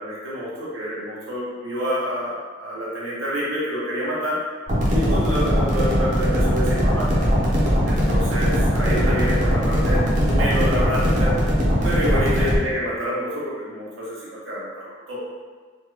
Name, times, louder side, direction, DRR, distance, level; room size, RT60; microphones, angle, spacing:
voice 1, 0.0-4.4 4.9-7.1 7.8-11.3 11.8-14.7 15.1-15.2, equal, 85° right, -7 dB, 0.8 m, -27 dB
sound 1, 4.7-12.6, equal, 40° right, 0.7 m, -20 dB
3.1 x 2.2 x 3.1 m, 1.5 s
head